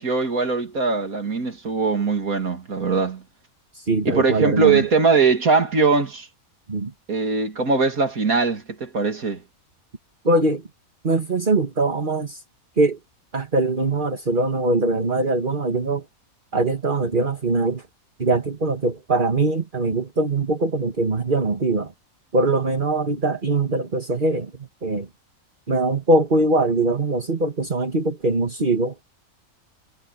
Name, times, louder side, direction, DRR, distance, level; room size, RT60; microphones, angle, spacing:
voice 1, 0.0-3.2 4.0-6.3 7.1-9.4, right 4 dB, 85° right, 3.1 m, -21 dB
voice 2, 3.7-4.8 6.7-6.9 10.2-10.6 11.0-12.4 12.8-13.0 13.3-16.0 16.5-17.8 18.2-21.9 22.3-25.1 25.7-28.9, right 2 dB, 35° right, 2.1 m, -22 dB
omnidirectional pair, 1.4 m